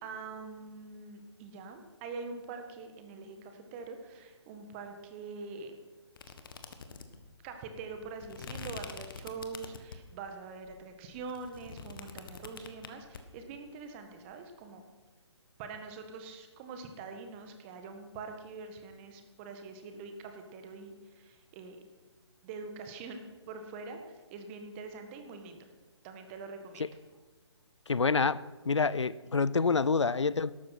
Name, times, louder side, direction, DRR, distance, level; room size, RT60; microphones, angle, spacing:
voice 1, 0.0-5.8 7.4-14.8 15.6-21.8 22.4-25.7 26.0-26.9, right 4 dB, 25° right, 1.8 m, -44 dB
sound 1, 6.2-10.2 10.6-13.2, left 5 dB, 50° left, 1.5 m, -45 dB
voice 2, 27.9-30.5, left 4 dB, 80° left, 0.5 m, -27 dB
13.5 x 12.5 x 6.0 m
figure-of-eight pair, 140°, 15 cm